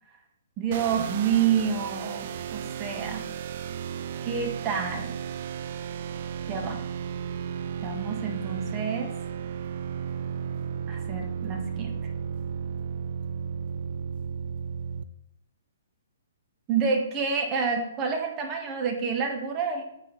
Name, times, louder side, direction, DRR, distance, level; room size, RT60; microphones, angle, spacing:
voice 1, 0.6-3.2 4.2-5.1 6.5-6.8 7.8-9.1 10.9-12.0 16.7-19.8, right 6 dB, 25° right, 2 dB, 1.6 m, -28 dB
sound 1, 0.7-15.0, right 7 dB, 50° right, 0.5 m, -34 dB
8.2 x 5.6 x 4.1 m, 0.81 s
hypercardioid pair, 130°, 0 cm